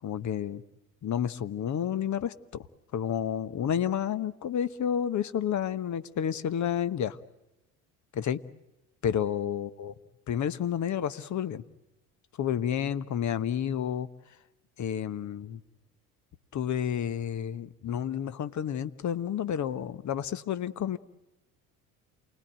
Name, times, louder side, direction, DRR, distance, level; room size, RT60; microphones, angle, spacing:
voice 1, 0.0-0.6 1.0-2.7 2.9-7.2 8.1-8.4 9.0-9.9 10.3-11.6 12.4-14.1 14.8-15.6 16.5-21.0, left 9 dB, 45° left, 1.2 m, -30 dB
28.5 x 19.5 x 9.1 m
hypercardioid pair, 60°, 42 cm